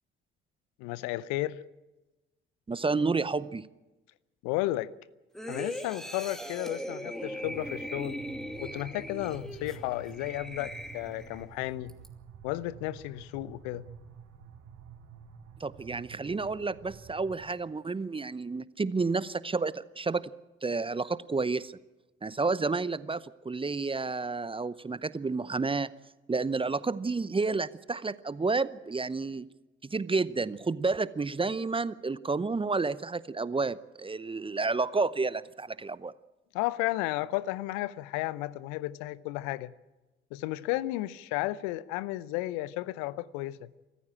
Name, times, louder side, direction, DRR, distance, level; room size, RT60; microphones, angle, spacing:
voice 1, 0.8-1.6 4.4-4.9 5.5-8.2 8.6-11.9 12.4-13.8 36.5-39.7 40.3-43.7, left 17 dB, 65° left, 0.8 m, -33 dB
voice 2, 2.7-3.7 15.6-20.2 20.6-21.8 22.2-25.9 26.3-29.5 29.9-36.1, right 4 dB, 15° right, 0.7 m, -30 dB
sound 1, 5.3-11.5 11.9-12.1, equal, ahead, 2.4 m, -40 dB
sound 2, 7.4-17.5, right 7 dB, 65° right, 3.6 m, -50 dB
26.0 x 14.5 x 8.8 m
figure-of-eight pair, 50°, 31 cm